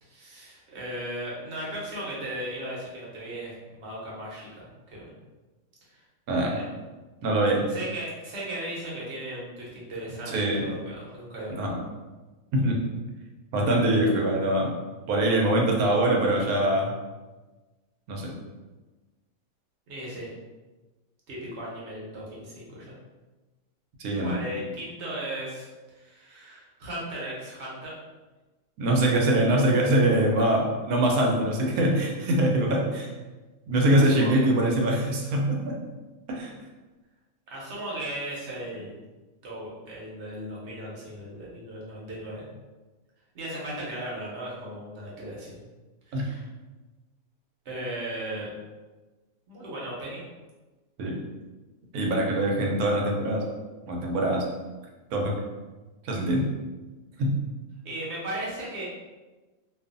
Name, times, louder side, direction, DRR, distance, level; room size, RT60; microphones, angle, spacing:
voice 1, 0.0-5.1 5.9-6.0 6.5-6.6 7.7-11.7 19.9-20.3 21.3-22.9 24.2-27.9 33.9-34.4 37.5-38.9 39.4-42.5 43.3-45.6 46.1-46.5 47.6-48.5 49.5-50.2 57.8-58.9, right 1 dB, 55° right, -5 dB, 1.0 m, -37 dB
voice 2, 7.2-7.7 10.3-10.6 11.6-11.7 12.5-12.8 13.5-14.7 15.1-16.9 18.1-18.4 24.0-24.3 28.8-33.1 33.7-35.8 36.3-36.5 46.1-46.2 51.0-51.2 51.9-53.5 53.9-54.4 55.1-55.3 56.0-56.5 57.2-57.4, right 1 dB, 85° right, 0 dB, 1.1 m, -23 dB
2.5 x 2.4 x 2.4 m, 1.2 s
omnidirectional pair, 1.5 m